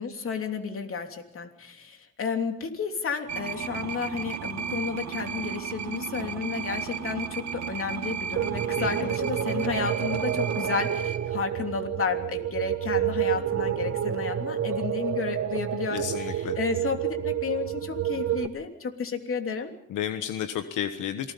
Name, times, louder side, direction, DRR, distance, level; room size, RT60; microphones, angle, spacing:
voice 1, 0.0-19.7, left 5 dB, 45° left, 5 dB, 3.1 m, -32 dB
sound 1, 3.3-11.2, right 7 dB, 65° right, 2.2 m, -34 dB
sound 2, 8.4-18.5, right 10 dB, 45° right, 1.3 m, -29 dB
voice 2, 15.9-16.5 19.9-21.3, left 10 dB, 85° left, 8 dB, 1.4 m, -31 dB
27.5 x 20.0 x 5.4 m, 0.72 s
cardioid pair, 90°, 30 cm